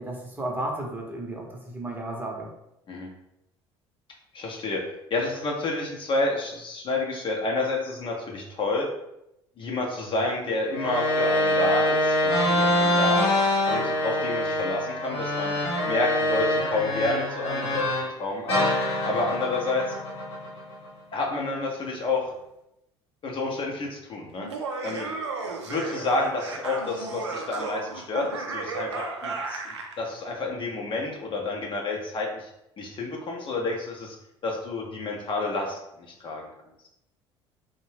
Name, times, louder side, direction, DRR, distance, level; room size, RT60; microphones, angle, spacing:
voice 1, 0.0-2.5, right 1 dB, 15° right, -1 dB, 0.7 m, -33 dB
voice 2, 4.3-4.8 5.1-8.9 9.6-13.4 13.7-15.5 15.9-17.9 18.2-18.7 19.0-19.9 21.1-22.3 23.2-24.5 24.8-25.1 25.7-29.6 30.0-32.5 32.8-34.2 34.4-35.8 36.2-36.5, left 2 dB, 35° left, -1 dB, 0.6 m, -29 dB
sound 1, 10.7-18.1 18.5-20.9, left 1 dB, 75° left, 0.9 m, -25 dB
Laughter, 24.4-30.0, right 3 dB, 85° right, 0.4 m, -34 dB
2.6 x 2.1 x 3.1 m, 0.84 s
figure-of-eight pair, 60°, 14 cm